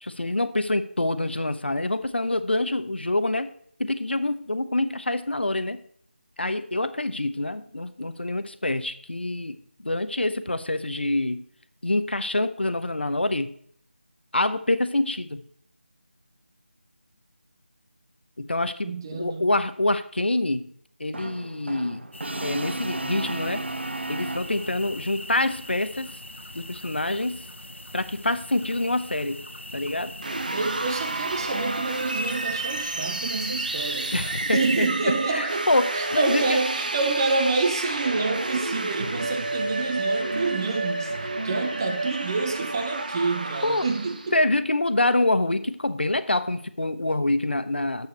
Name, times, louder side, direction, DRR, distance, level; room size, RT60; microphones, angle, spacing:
voice 1, 0.0-3.5 3.8-5.8 6.4-9.6 9.8-11.4 11.8-13.5 14.3-15.4 18.4-20.7 21.0-22.0 22.4-23.6 24.1-26.2 26.5-27.4 27.9-29.4 29.7-30.1 34.1-36.6 43.6-43.9 44.3-48.1, left 2 dB, 65° left, 0.9 m, -26 dB
voice 2, 18.8-19.5 30.5-34.2 34.5-35.7 35.9-44.4, right 3 dB, 20° right, 0.8 m, -28 dB
Brass instrument, 21.1-24.9, right 2 dB, 65° right, 0.7 m, -34 dB
sound 1, 22.1-34.9, left 1 dB, 80° left, 1.4 m, -41 dB
sound 2, 30.2-44.4, right 2 dB, 45° right, 1.1 m, -30 dB
9.7 x 8.2 x 4.4 m
figure-of-eight pair, 160°, 6 cm